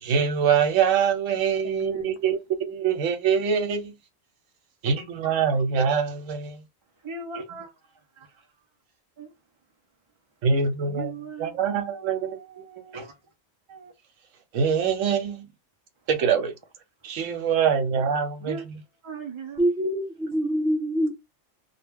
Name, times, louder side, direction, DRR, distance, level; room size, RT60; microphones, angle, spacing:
voice 1, 0.0-2.4 2.7-3.9 4.8-6.6 10.4-11.1 11.4-12.7 14.5-15.5 16.1-16.5 17.0-18.6, right 6 dB, 85° right, 1.0 m, -24 dB
voice 2, 1.6-2.2 4.8-5.1 7.0-8.5 9.2-9.3 10.9-13.2 13.7-13.9 17.0-17.2 18.4-18.7 19.0-19.6, right 4 dB, 50° right, 0.3 m, -39 dB
voice 3, 19.6-21.1, equal, 5° right, 1.0 m, -24 dB
2.2 x 2.1 x 3.4 m
omnidirectional pair, 1.3 m